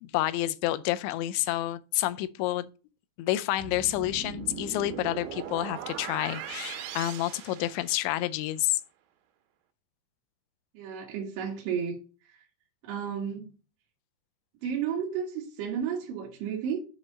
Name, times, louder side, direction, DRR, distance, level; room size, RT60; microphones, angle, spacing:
voice 1, 0.0-2.7 3.2-8.8, left 15 dB, 85° left, 2.8 m, -29 dB
sound 1, 3.6-8.3, right 8 dB, 80° right, 2.9 m, -39 dB
voice 2, 10.7-12.4 12.8-13.5 14.6-16.8, right 7 dB, 65° right, 2.6 m, -33 dB
8.2 x 3.3 x 6.3 m
omnidirectional pair, 5.1 m